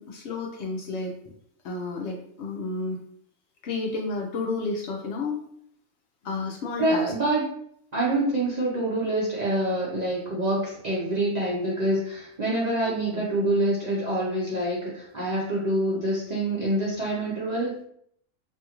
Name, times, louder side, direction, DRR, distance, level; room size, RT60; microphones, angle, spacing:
voice 1, 0.0-1.3 1.6-3.0 3.6-5.4 6.2-7.1 12.8-13.3, left 3 dB, 65° left, 0 dB, 0.7 m, -31 dB
voice 2, 6.8-7.4 7.9-17.8, right 1 dB, 70° right, -6 dB, 0.4 m, -26 dB
2.6 x 2.4 x 2.9 m, 0.67 s
omnidirectional pair, 1.5 m